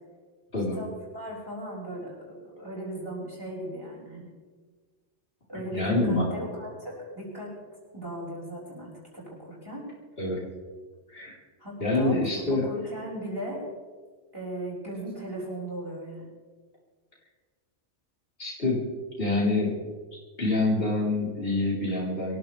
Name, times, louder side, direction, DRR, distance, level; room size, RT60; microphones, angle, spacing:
voice 1, 0.7-4.3 5.5-7.5 7.9-9.8 11.6-13.6 14.3-16.3, right 1 dB, 20° right, -6 dB, 6.7 m, -37 dB
voice 2, 5.7-6.2 10.2-10.4 11.1-11.4 11.8-12.6 18.4-18.8 19.2-19.7 20.4-22.4, left 2 dB, 55° left, -6 dB, 4.3 m, -26 dB
24.5 x 15.0 x 3.5 m, 1.5 s
omnidirectional pair, 1.2 m